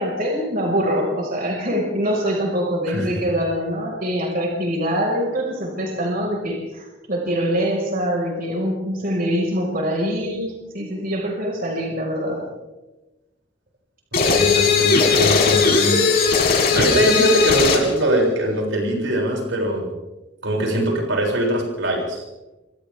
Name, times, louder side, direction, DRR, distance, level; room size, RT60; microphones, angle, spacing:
voice 1, 0.0-12.5 16.7-17.0, equal, 50° right, -1 dB, 5.6 m, -24 dB
sound 1, 14.1-17.9, left 5 dB, 55° left, 5.6 m, -18 dB
voice 2, 14.3-16.0 16.7-19.9 20.4-22.2, right 1 dB, 85° right, -1 dB, 7.1 m, -21 dB
28.0 x 25.5 x 3.7 m, 1.1 s
head